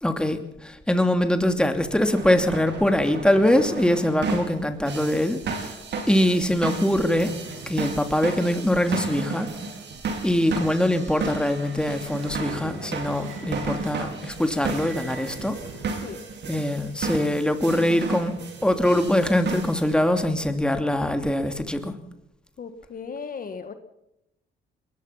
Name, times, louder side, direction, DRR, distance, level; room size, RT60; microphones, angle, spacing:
voice 1, 0.0-5.8 6.1-7.3 7.7-9.5 10.2-15.6 16.5-18.3 18.6-21.9, left 1 dB, 5° left, 7 dB, 2.7 m, -23 dB
sound 1, 2.1-19.9, right 4 dB, 60° right, 5.1 m, -34 dB
sound 2, 7.1-15.8, right 3 dB, 80° right, 7.7 m, -44 dB
voice 2, 22.6-23.7, left 5 dB, 45° left, 9 dB, 1.7 m, -36 dB
22.0 x 20.5 x 5.8 m, 0.85 s
cardioid pair, 90°, 20 cm